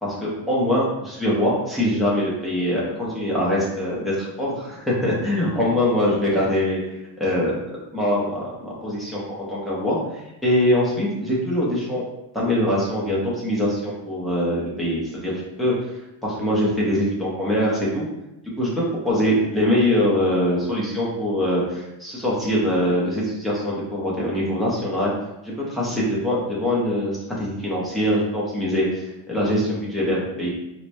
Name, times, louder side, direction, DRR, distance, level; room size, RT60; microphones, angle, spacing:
voice 1, 0.0-6.8 7.2-7.5 7.9-12.0 12.3-15.7 16.2-18.0 18.6-25.1 25.4-30.5, left 1 dB, ahead, -7 dB, 0.5 m, -23 dB
4.4 x 2.0 x 2.6 m, 0.91 s
cardioid pair, 180°, 46 cm